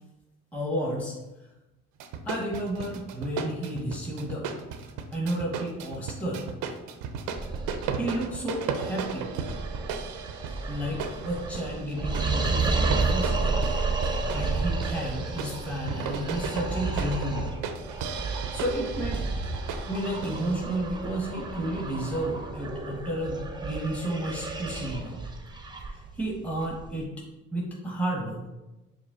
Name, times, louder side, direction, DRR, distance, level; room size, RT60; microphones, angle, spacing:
voice 1, 0.5-1.1 2.2-4.5 5.1-6.5 8.0-9.3 10.7-13.6 14.3-17.6 18.0-18.2 18.5-19.2 19.9-25.2 25.9-27.1 27.5-28.5, right 1 dB, 5° left, -3 dB, 0.9 m, -32 dB
sound 1, 2.0-20.5, right 6 dB, 80° right, 0.5 m, -36 dB
sound 2, 7.4-27.0, right 3 dB, 15° right, 0.6 m, -32 dB
4.9 x 2.2 x 3.7 m, 1.0 s
supercardioid pair, 80°, 31 cm